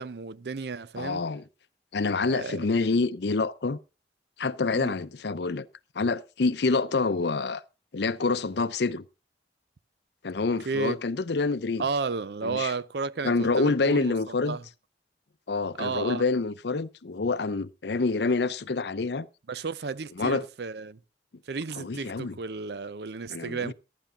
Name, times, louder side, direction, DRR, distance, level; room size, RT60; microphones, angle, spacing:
voice 1, 0.0-1.2 2.2-2.7 4.7-5.0 10.7-11.0 11.8-14.6 15.8-16.2 19.5-21.0 21.5-23.7, right 4 dB, 65° right, 0.5 m, -33 dB
voice 2, 1.0-1.4 1.9-3.8 4.4-5.7 5.9-7.6 7.9-9.0 10.2-11.8 12.4-12.7 13.2-14.6 15.5-19.3 20.2-20.5 21.8-22.3 23.3-23.7, left 3 dB, 65° left, 0.6 m, -27 dB
15.0 x 11.5 x 3.7 m
head